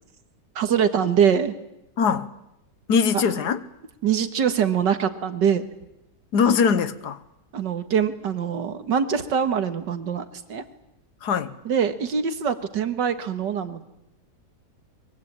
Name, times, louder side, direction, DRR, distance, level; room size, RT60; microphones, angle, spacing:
voice 1, 0.6-1.5 3.1-3.2 4.0-5.6 7.5-10.6 11.7-13.8, right 7 dB, 80° right, 2.2 m, -23 dB
voice 2, 2.0-2.3 2.9-3.6 6.3-7.2 11.2-11.5, left 6 dB, 70° left, 1.6 m, -21 dB
23.5 x 22.5 x 8.7 m
omnidirectional pair, 1.9 m